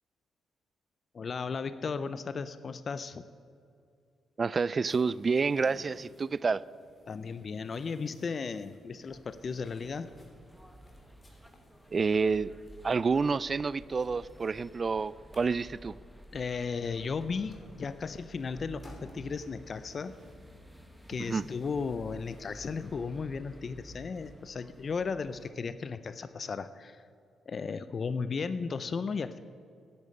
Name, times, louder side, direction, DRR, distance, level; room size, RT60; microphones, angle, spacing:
voice 1, 1.1-3.3 7.1-10.1 16.3-20.1 21.1-27.1 27.5-29.4, left 5 dB, 50° left, 0.5 m, -35 dB
voice 2, 4.4-6.6 11.9-12.6 12.8-16.0 21.2-21.4, right 4 dB, 40° right, 0.3 m, -29 dB
sound 1, 4.8-19.5, left 1 dB, 25° left, 3.3 m, -58 dB
sound 2, 9.1-25.5, equal, ahead, 1.4 m, -53 dB
sound 3, 19.2-24.5, right 3 dB, 70° right, 2.8 m, -59 dB
10.5 x 8.7 x 9.0 m
cardioid pair, 65°, 0 cm